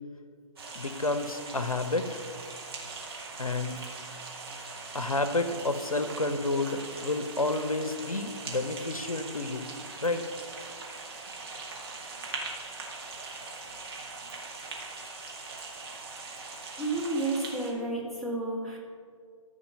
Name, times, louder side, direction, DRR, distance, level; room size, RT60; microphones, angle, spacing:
sound 1, 0.6-17.7, right 3 dB, 45° right, 2.1 m, -41 dB
voice 1, 0.8-2.2 3.4-3.8 4.5-4.6 4.9-9.7 10.0-10.3, left 2 dB, 85° left, 10 dB, 0.7 m, -30 dB
voice 2, 16.8-18.8, right 2 dB, ahead, -8 dB, 1.9 m, -31 dB
14.0 x 5.3 x 5.4 m, 2.1 s
figure-of-eight pair, 135°, 18 cm